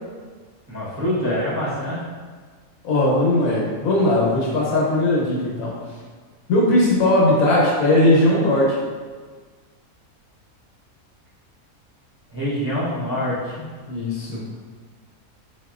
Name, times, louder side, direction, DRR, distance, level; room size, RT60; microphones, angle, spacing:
voice 1, 0.7-2.0 12.3-13.7, equal, 15° right, -10 dB, 0.5 m, -25 dB
voice 2, 2.8-5.7 6.5-8.8 13.9-14.4, left 1 dB, 70° left, -5 dB, 1.2 m, -18 dB
4.1 x 2.8 x 2.4 m, 1.5 s
omnidirectional pair, 1.6 m